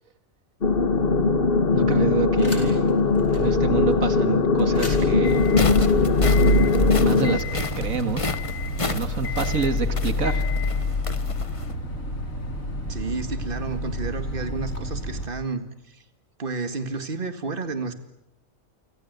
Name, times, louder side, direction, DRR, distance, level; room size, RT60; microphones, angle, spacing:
sound 1, 0.6-7.4, left 4 dB, 45° left, 1.6 m, -20 dB
voice 1, 1.7-2.9 3.3-5.4 7.0-8.4 8.9-10.5, right 4 dB, 85° right, 10 dB, 2.1 m, -28 dB
sound 2, 2.4-2.9 3.3-3.4 4.6-15.2, left 1 dB, 85° left, 5.4 m, -27 dB
sound 3, 5.2-11.7, left 3 dB, 25° left, 1.2 m, -33 dB
voice 2, 12.9-16.0 16.4-17.9, right 3 dB, 40° right, 9 dB, 2.2 m, -31 dB
29.5 x 25.0 x 8.2 m, 0.83 s
omnidirectional pair, 1.4 m